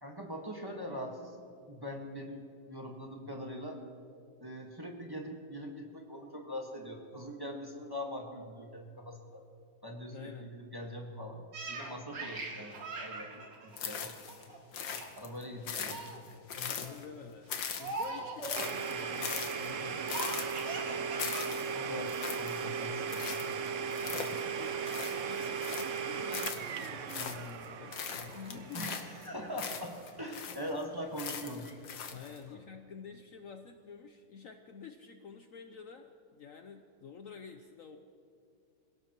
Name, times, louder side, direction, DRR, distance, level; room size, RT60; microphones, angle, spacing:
voice 1, 0.0-1.4 1.7-3.8 4.4-9.4 9.8-14.1 15.1-16.1 21.4-23.7 28.7-31.8 32.5-32.6, equal, 15° right, 0 dB, 1.3 m, -42 dB
voice 2, 10.1-10.5 15.5-15.6 16.5-17.5 17.8-20.2 23.8-29.0 32.1-38.0, left 6 dB, 85° left, 6 dB, 0.7 m, -49 dB
Laughter, 11.5-14.6 15.0-15.3 15.6-16.2 16.7-17.0 17.7-18.7 20.1-21.5 21.8-21.9 22.5-23.0, right 3 dB, 55° right, 2.2 m, -41 dB
sound 1, 13.8-14.5 14.7-17.2 17.5-26.0 26.3-27.7 27.9-30.8 31.2-32.4, left 7 dB, 65° left, 1.7 m, -41 dB
Domestic sounds home sounds, 18.6-30.2, right 6 dB, 80° right, 0.6 m, -37 dB
26.5 x 17.0 x 3.0 m, 2.4 s
omnidirectional pair, 2.3 m